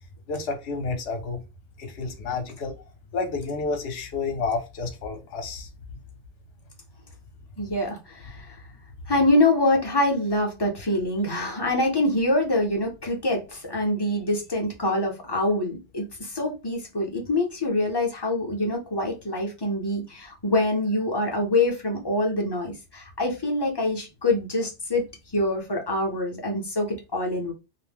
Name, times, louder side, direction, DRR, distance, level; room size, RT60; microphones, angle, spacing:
voice 1, 0.3-1.4 1.8-2.7 3.1-6.0, left 4 dB, 65° left, 1.0 m, -30 dB
voice 2, 7.6-8.6 9.1-25.0 25.3-27.5, left 1 dB, 30° left, 0.5 m, -25 dB
2.5 x 2.1 x 3.4 m
omnidirectional pair, 1.2 m